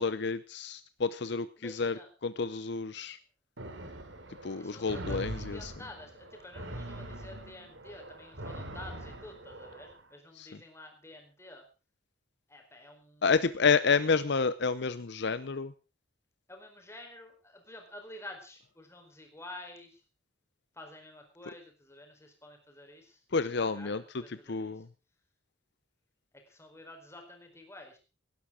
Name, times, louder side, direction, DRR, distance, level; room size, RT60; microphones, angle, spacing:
voice 1, 0.0-3.2 4.4-5.7 10.4-10.5 13.2-15.7 23.3-24.0 24.3-24.9, left 5 dB, 65° left, 14 dB, 0.7 m, -30 dB
voice 2, 1.6-2.1 4.5-11.6 12.5-13.3 13.6-14.1 16.5-20.0 20.7-23.2 23.6-24.8 26.3-28.0, left 1 dB, 15° left, 4 dB, 4.6 m, -50 dB
sound 1, 3.6-10.0, right 1 dB, 80° right, 3.0 m, -42 dB
18.0 x 11.5 x 5.0 m, 0.34 s
head